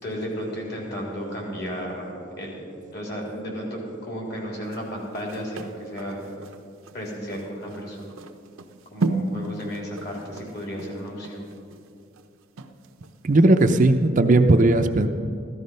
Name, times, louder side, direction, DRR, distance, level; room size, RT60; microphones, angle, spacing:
voice 1, 0.0-2.6 2.9-6.2 6.9-8.1 8.9-11.4, equal, 50° left, -2 dB, 3.5 m, -33 dB
sound 1, 4.6-13.2 13.6-13.7, right 2 dB, 85° right, 0.8 m, -34 dB
voice 2, 13.2-15.1, right 2 dB, 40° right, 7 dB, 0.5 m, -17 dB
14.5 x 13.0 x 5.4 m, 2.4 s
head